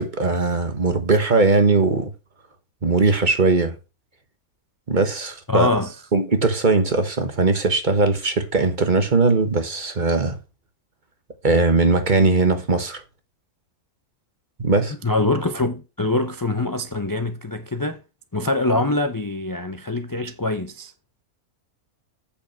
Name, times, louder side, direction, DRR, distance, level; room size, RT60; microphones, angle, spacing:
voice 1, 0.0-2.1 2.8-3.8 4.9-5.7 6.1-10.4 11.4-13.0 14.6-14.9, right 3 dB, 35° right, 1.3 m, -19 dB
voice 2, 5.5-6.0 15.0-18.0 18.3-20.9, left 2 dB, 25° left, 0.4 m, -24 dB
8.3 x 6.9 x 4.5 m
omnidirectional pair, 1.5 m